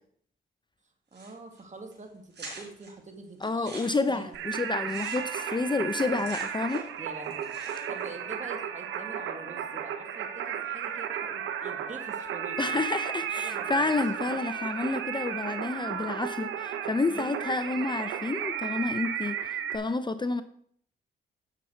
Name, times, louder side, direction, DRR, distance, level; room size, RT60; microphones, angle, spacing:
voice 1, 1.1-4.4 7.0-7.5 7.9-12.8 13.4-13.9 14.2-14.4 17.1-17.4, right 3 dB, 35° right, 5 dB, 2.0 m, -45 dB
sound 1, 1.1-1.6 1.9-2.0 2.3-2.9 3.4-7.0 7.2-8.1, right 3 dB, 60° right, 4.7 m, -45 dB
voice 2, 3.4-6.8 12.6-20.4, left 3 dB, 25° left, 12 dB, 0.6 m, -29 dB
Singing, 4.3-19.8, right 8 dB, 85° right, 0.9 m, -34 dB
9.0 x 7.1 x 4.5 m, 0.63 s
supercardioid pair, 55°, 20 cm